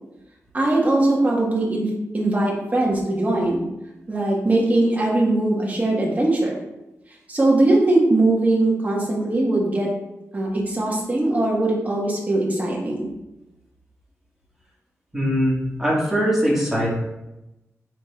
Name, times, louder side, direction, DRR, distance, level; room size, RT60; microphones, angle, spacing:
voice 1, 0.5-3.6 4.1-6.5 7.3-9.9 10.3-13.1, right 2 dB, 30° right, -3 dB, 1.6 m, -20 dB
voice 2, 15.1-16.9, equal, 5° right, -7 dB, 2.2 m, -21 dB
7.7 x 5.0 x 2.5 m, 0.95 s
wide cardioid pair, 135°, 5 cm